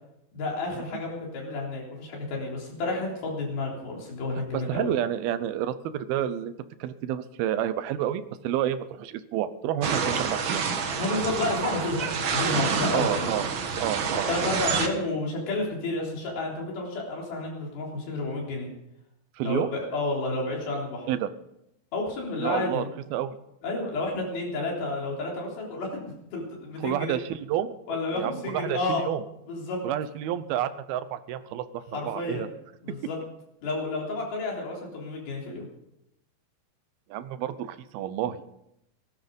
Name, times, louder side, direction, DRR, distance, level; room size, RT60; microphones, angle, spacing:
voice 1, 0.3-4.9 11.0-13.3 14.1-18.7 19.4-21.1 21.9-22.9 23.6-26.0 26.3-27.2 27.9-29.0 29.5-29.8 31.9-32.4 32.8-33.2 33.6-35.7, left 2 dB, 80° left, -2 dB, 5.5 m, -31 dB
voice 2, 4.5-6.5 6.8-10.6 12.9-13.5 13.8-14.3 14.7-14.8 19.4-19.8 21.1-21.3 22.4-22.8 23.1-23.4 26.8-29.2 29.8-32.5 37.1-38.4, right 11 dB, 85° right, 13 dB, 2.8 m, -30 dB
sound 1, 9.8-14.9, right 6 dB, 65° right, 1.2 m, -28 dB
18.0 x 12.5 x 5.3 m, 0.84 s
omnidirectional pair, 4.3 m